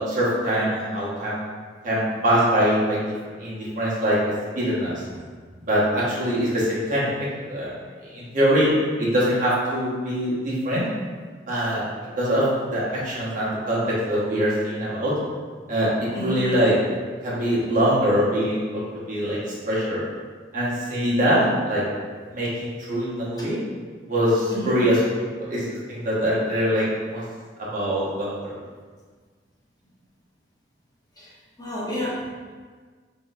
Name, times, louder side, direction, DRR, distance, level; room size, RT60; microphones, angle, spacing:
voice 1, 0.0-1.4 1.8-3.0 3.4-5.0 5.7-7.7 8.1-8.7 9.0-10.9 11.5-11.8 12.2-15.1 15.7-19.4 19.7-20.0 20.5-21.8 22.3-23.6 24.1-25.0 25.4-27.2 27.6-28.5, equal, 50° right, -7 dB, 1.3 m, -23 dB
voice 2, 31.6-32.3, left 1 dB, 20° left, -7 dB, 0.9 m, -30 dB
6.0 x 3.0 x 2.5 m, 1.5 s
head